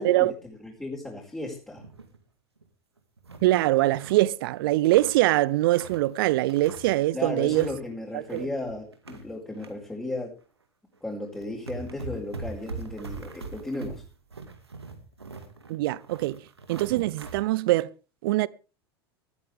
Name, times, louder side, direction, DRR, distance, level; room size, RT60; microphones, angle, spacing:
voice 1, 0.0-1.8 7.1-10.3 11.0-14.0, left 2 dB, 10° left, 4.9 m, -35 dB
sound 1, 1.7-2.2 2.6-2.7 3.0-4.2 4.7-6.1 6.5-7.1 7.3-7.8 8.1-9.7 10.1-10.3 11.0-11.1 11.3-17.4, right 3 dB, 90° right, 2.2 m, -42 dB
voice 2, 3.4-7.7 8.1-8.5 15.7-16.4 16.7-17.9 18.2-18.5, right 17 dB, 60° right, 0.7 m, -23 dB
19.5 x 13.5 x 3.5 m
figure-of-eight pair, 85°, 13 cm